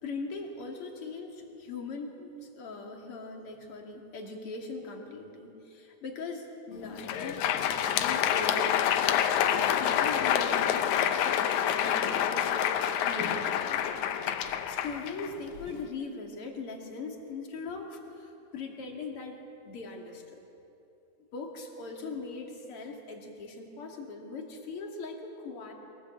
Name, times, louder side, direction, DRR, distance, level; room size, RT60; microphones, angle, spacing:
voice 1, 0.0-9.2 9.8-14.0 14.7-19.4 19.6-20.4 21.3-25.7, left 3 dB, 45° left, 1 dB, 2.8 m, -40 dB
Crowd, 6.9-15.8, left 9 dB, 70° left, 1.9 m, -27 dB
23.5 x 17.5 x 7.8 m, 2.8 s
omnidirectional pair, 4.0 m